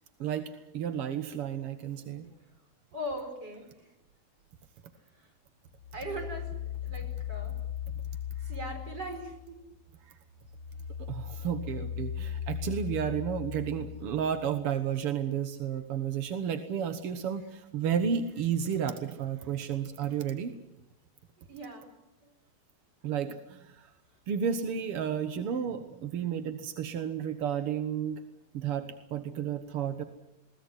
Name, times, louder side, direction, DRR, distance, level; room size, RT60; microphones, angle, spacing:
voice 1, 0.2-2.3 11.0-20.5 23.0-23.9 24.3-28.2 28.5-30.0, right 8 dB, 65° right, 9 dB, 1.5 m, -32 dB
voice 2, 2.9-3.9 5.2-5.3 5.9-7.6 8.4-9.6 21.4-21.9 22.2-22.3, right 1 dB, 25° right, 5 dB, 5.3 m, -40 dB
sound 1, 5.8-9.6 10.0-14.6, left 10 dB, 60° left, 1.5 m, -38 dB
21.5 x 18.5 x 9.8 m, 0.90 s
omnidirectional pair, 4.2 m